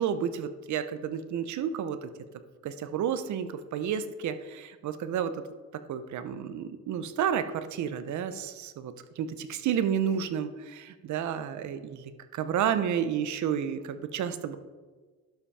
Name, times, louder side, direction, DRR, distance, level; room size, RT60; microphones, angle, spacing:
voice 1, 0.0-2.1 2.6-5.4 5.7-14.6, right 8 dB, 75° right, 11 dB, 0.8 m, -31 dB
11.5 x 5.9 x 4.2 m, 1.4 s
cardioid pair, 100°, 29 cm